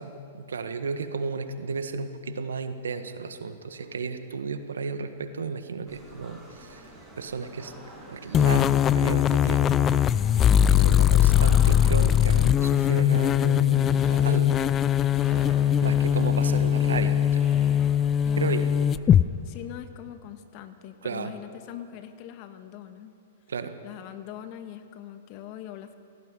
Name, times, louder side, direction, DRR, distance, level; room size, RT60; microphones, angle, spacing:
voice 1, 0.0-6.8 7.2-7.7 8.1-10.0 10.4-14.6 15.2-15.3 15.8-17.5 18.4-18.7 21.0-21.3 23.5-23.7, right 5 dB, 85° right, 9 dB, 1.6 m, -33 dB
sound 1, 5.9-19.7, equal, ahead, 7.2 m, -46 dB
sound 2, 8.3-19.2, left 10 dB, 25° left, 0.5 m, -21 dB
voice 2, 18.2-18.6 19.4-23.1 23.8-26.0, left 11 dB, 45° left, 9 dB, 1.6 m, -42 dB
17.0 x 16.0 x 10.0 m, 2.6 s
hypercardioid pair, 125°, 0 cm